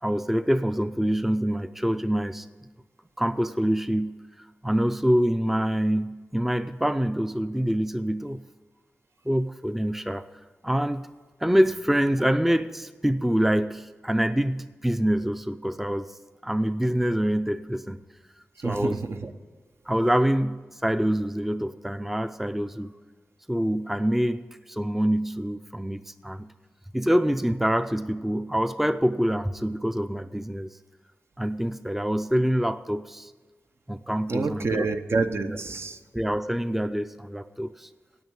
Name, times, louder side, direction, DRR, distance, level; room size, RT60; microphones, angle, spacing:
voice 1, 0.0-2.5 3.2-8.4 9.3-10.3 10.6-11.1 11.4-16.2 16.4-18.0 18.6-19.0 19.9-22.9 23.5-26.5 26.9-30.7 31.4-33.3 33.9-34.8 35.5-35.6 36.1-37.9, equal, 5° right, 12 dB, 0.4 m, -25 dB
voice 2, 18.6-19.3 34.3-36.0, right 4 dB, 60° right, 7 dB, 0.8 m, -28 dB
9.5 x 8.8 x 8.8 m, 1.4 s
cardioid pair, 60°, 5 cm